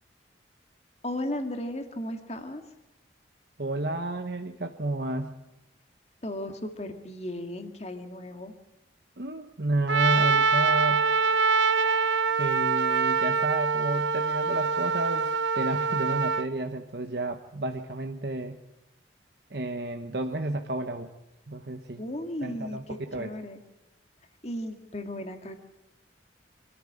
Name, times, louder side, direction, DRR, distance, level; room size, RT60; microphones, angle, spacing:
voice 1, 1.0-2.6 6.2-8.5 22.0-23.6 24.4-25.6, left 1 dB, 35° left, 6 dB, 2.0 m, -35 dB
voice 2, 3.6-5.3 9.2-11.1 11.8-12.0 12.4-18.6 19.5-21.1 21.5-22.0 22.4-23.3, right 2 dB, 60° right, 5 dB, 1.1 m, -31 dB
Trumpet, 9.9-16.5, right 4 dB, 85° right, 0.8 m, -24 dB
25.5 x 13.5 x 8.8 m, 0.92 s
head